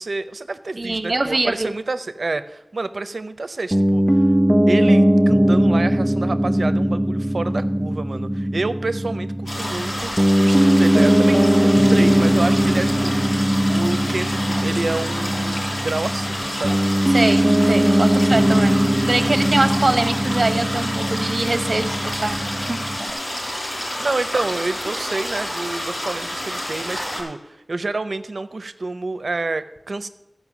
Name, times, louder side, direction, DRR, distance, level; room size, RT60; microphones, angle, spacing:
voice 1, 0.0-4.3 4.7-10.1 10.4-16.8 24.0-30.1, right 3 dB, 90° right, 11 dB, 0.6 m, -28 dB
voice 2, 0.8-1.7 17.1-22.8, right 2 dB, 60° right, 7 dB, 1.1 m, -23 dB
Piano, 3.7-23.1, right 1 dB, 10° right, 0.6 m, -19 dB
sound 1, 9.5-27.2, equal, 75° left, 4.7 m, -29 dB
14.5 x 5.3 x 7.2 m, 0.95 s
wide cardioid pair, 60°, 0 cm